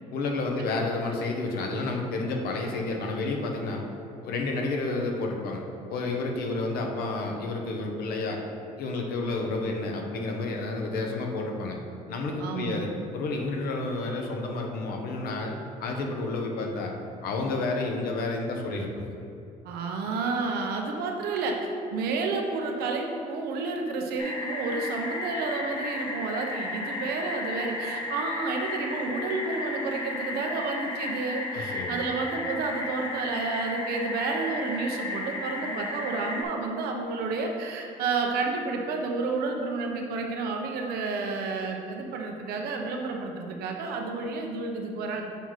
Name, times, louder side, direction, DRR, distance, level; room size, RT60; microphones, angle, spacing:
voice 1, 0.1-3.8 4.1-5.6 5.9-8.4 8.8-11.8 12.1-16.9 17.2-19.0 31.5-32.0, left 3 dB, 75° left, 1 dB, 1.0 m, -30 dB
voice 2, 12.4-13.0 19.6-45.3, right 3 dB, 85° right, 2 dB, 0.9 m, -30 dB
sound 1, 24.2-36.4, left 2 dB, 30° left, 0.9 m, -34 dB
6.9 x 4.7 x 4.1 m, 2.6 s
cardioid pair, 100°, 16 cm